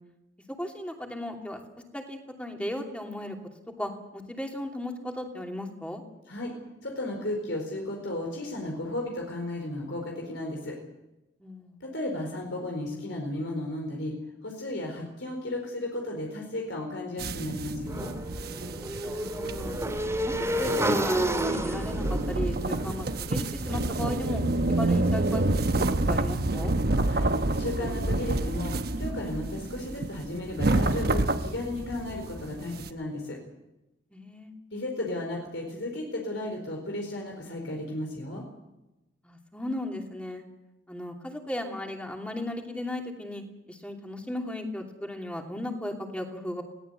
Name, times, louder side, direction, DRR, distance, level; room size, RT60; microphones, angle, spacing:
voice 1, 0.5-1.6 1.9-3.4 3.8-6.0 11.4-11.8 19.0-19.8 20.2-24.4 24.8-25.6 25.9-26.7 34.1-34.5 39.2-40.4 40.9-43.4 43.7-46.6, left 1 dB, 5° left, 3 dB, 2.8 m, -36 dB
voice 2, 6.8-10.8 11.8-14.2 14.4-18.1 27.0-27.3 27.6-33.4 34.7-38.4, left 1 dB, 90° left, 1 dB, 4.4 m, -34 dB
sound 1, 17.2-32.9, right 2 dB, 55° right, 1.1 m, -29 dB
Motorcycle / Engine, 17.9-24.0, right 1 dB, 15° right, 3.3 m, -30 dB
21.0 x 17.5 x 8.1 m, 0.96 s
head